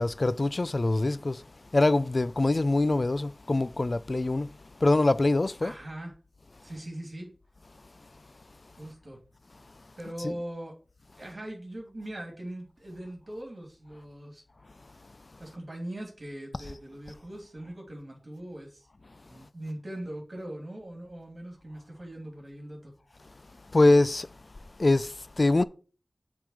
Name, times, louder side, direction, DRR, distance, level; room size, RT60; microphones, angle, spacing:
voice 1, 0.0-1.4 1.7-4.5 4.8-5.8 10.2-10.3 16.6-16.7 23.7-24.3 24.8-25.6, left 2 dB, 60° left, 0.5 m, -24 dB
voice 2, 5.6-6.1 6.6-7.3 8.8-9.2 10.0-10.7 11.2-14.4 15.4-18.9 19.2-22.9, right 1 dB, 60° right, 3.0 m, -40 dB
7.6 x 3.7 x 6.6 m
wide cardioid pair, 60°, 0 cm